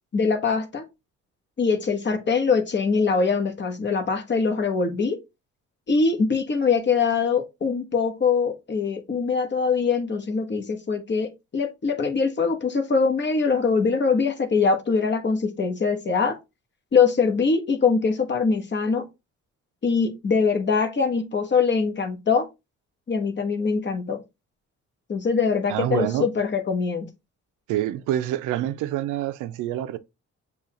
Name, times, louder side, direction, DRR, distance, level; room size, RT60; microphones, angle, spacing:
voice 1, 0.1-0.8 1.6-5.2 5.9-16.4 16.9-19.0 19.8-22.5 23.1-24.2 25.1-27.0, left 5 dB, 35° left, 1.2 m, -23 dB
voice 2, 25.7-26.3 27.7-30.0, right 12 dB, 90° right, 0.5 m, -26 dB
6.9 x 2.4 x 2.9 m
cardioid pair, 90°, 30 cm